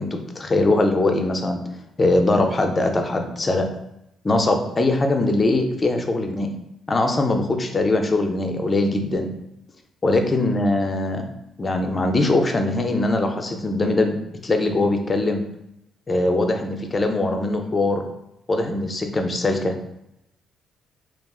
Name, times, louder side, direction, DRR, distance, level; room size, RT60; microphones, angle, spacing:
voice 1, 0.0-1.6 2.0-3.7 4.2-6.5 6.9-9.3 10.0-11.3 11.6-14.2 14.4-15.4 16.1-18.0 18.5-19.7, left 2 dB, 30° left, 5 dB, 0.4 m, -21 dB
3.5 x 2.3 x 2.3 m, 0.82 s
cardioid pair, 90°, 0 cm